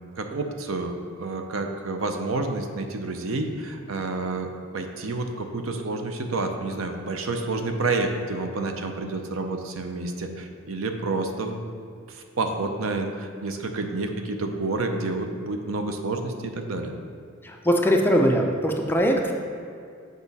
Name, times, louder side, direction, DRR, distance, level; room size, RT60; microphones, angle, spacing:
voice 1, 0.2-11.6 12.1-16.9, right 3 dB, 90° right, 5 dB, 0.6 m, -29 dB
voice 2, 17.4-19.3, equal, 10° left, 2 dB, 0.5 m, -21 dB
7.0 x 4.9 x 4.1 m, 2.3 s
head